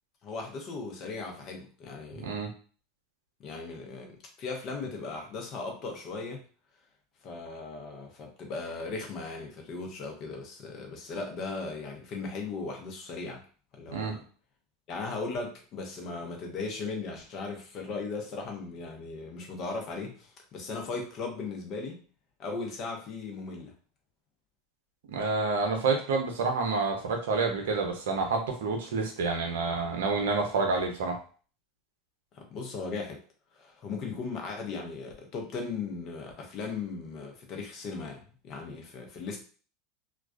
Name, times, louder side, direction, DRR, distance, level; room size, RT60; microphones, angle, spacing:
voice 1, 0.2-2.4 3.4-6.4 7.2-13.4 13.7-14.2 14.9-22.0 22.4-23.7 32.3-33.2 33.6-39.4, left 4 dB, 50° left, 2 dB, 0.8 m, -37 dB
voice 2, 2.1-2.5 13.9-14.2 25.1-31.2, right 4 dB, 80° right, 3 dB, 0.6 m, -28 dB
2.3 x 2.3 x 2.3 m, 0.40 s
hypercardioid pair, 90°, 0 cm